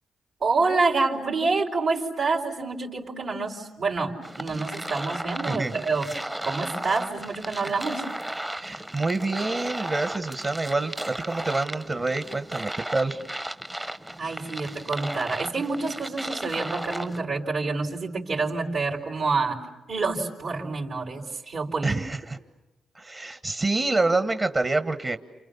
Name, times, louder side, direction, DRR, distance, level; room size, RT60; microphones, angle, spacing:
voice 1, 0.4-6.1 6.4-8.0 14.2-19.6 19.9-22.0, right 3 dB, 70° right, -1 dB, 4.3 m, -27 dB
sound 1, 4.2-17.2, right 1 dB, 15° right, 1.0 m, -35 dB
voice 2, 8.6-13.2 21.8-22.4 22.9-25.2, right 3 dB, 40° right, 9 dB, 1.5 m, -27 dB
29.0 x 28.5 x 7.1 m, 1.0 s
cardioid pair, 70°, 0 cm